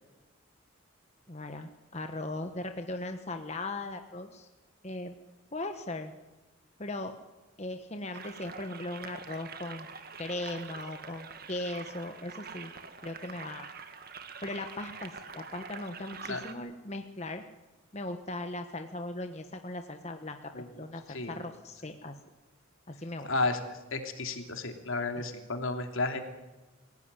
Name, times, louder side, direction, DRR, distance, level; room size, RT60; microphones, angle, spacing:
voice 1, 1.3-4.5 4.8-5.1 5.5-6.1 6.8-7.1 7.6-9.9 10.2-12.7 13.0-13.7 14.4-17.4 17.9-22.2 22.9-23.3 25.2-25.3, left 2 dB, 30° left, 6 dB, 1.2 m, -38 dB
sound 1, 8.1-16.5, right 5 dB, 45° right, 1.8 m, -45 dB
voice 2, 23.3-23.6 23.9-26.2, left 3 dB, 70° left, 5 dB, 3.1 m, -32 dB
25.5 x 17.0 x 9.9 m, 1.1 s
head